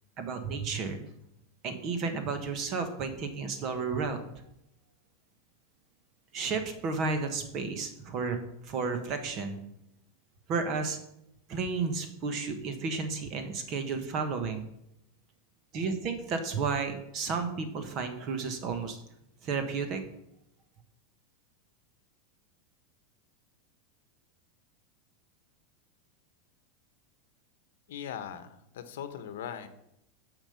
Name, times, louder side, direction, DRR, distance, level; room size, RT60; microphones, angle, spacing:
voice 1, 0.2-1.0 1.6-4.2 6.3-8.4 8.6-9.6 10.5-11.0 11.5-14.7 15.7-19.0 19.4-20.0, right 4 dB, 35° right, 7 dB, 1.3 m, -32 dB
voice 2, 27.9-29.7, left 9 dB, 80° left, 10 dB, 0.9 m, -40 dB
7.3 x 5.1 x 6.9 m, 0.79 s
supercardioid pair, 155°, 0 cm